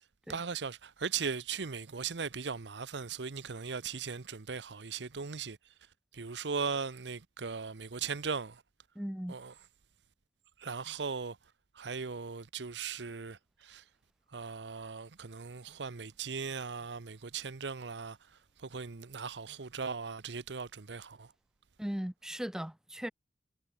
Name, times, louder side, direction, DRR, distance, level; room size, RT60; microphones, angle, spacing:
voice 1, 0.3-5.6 6.1-8.6 9.3-9.5 10.6-11.4 11.7-13.8 14.3-21.3, right 5 dB, 80° right, 0.9 m, -38 dB
voice 2, 9.0-9.4 21.8-23.1, equal, 5° right, 0.4 m, -38 dB
head